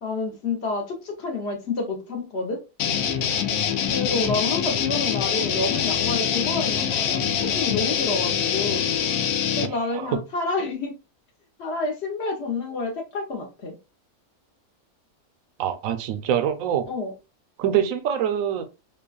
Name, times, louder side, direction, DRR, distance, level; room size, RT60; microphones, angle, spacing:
voice 1, 0.0-2.6 3.9-8.9 9.6-10.9 11.6-13.8 16.9-17.1, left 3 dB, 50° left, 1.0 m, -29 dB
sound 1, 2.8-9.7, left 8 dB, 90° left, 1.1 m, -24 dB
voice 2, 9.6-10.2 15.6-16.9 17.6-18.6, right 9 dB, 70° right, 1.0 m, -25 dB
5.3 x 2.2 x 2.4 m
omnidirectional pair, 1.6 m